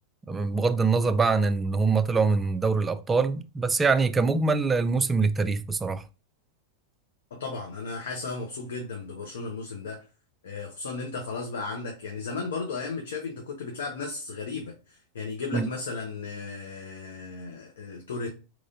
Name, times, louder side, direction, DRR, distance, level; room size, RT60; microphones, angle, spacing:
voice 1, 0.3-6.0 15.5-15.7, right 4 dB, 15° right, 0.3 m, -24 dB
voice 2, 7.3-10.0 10.4-18.3, left 4 dB, 80° left, 0.8 m, -35 dB
3.8 x 3.1 x 2.5 m
hypercardioid pair, 110°, 0 cm